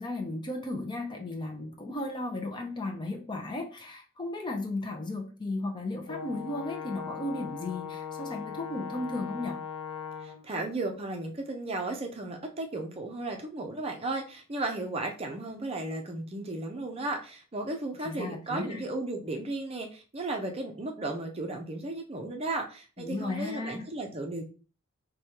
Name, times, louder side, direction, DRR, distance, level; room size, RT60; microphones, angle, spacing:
voice 1, 0.0-9.6 18.0-18.8 23.0-23.9, left 2 dB, 20° left, 2 dB, 0.5 m, -35 dB
Brass instrument, 6.1-10.5, left 6 dB, 80° left, 0.4 m, -39 dB
voice 2, 10.2-24.5, right 2 dB, 25° right, 3 dB, 0.5 m, -35 dB
4.8 x 2.3 x 2.8 m, 0.36 s
head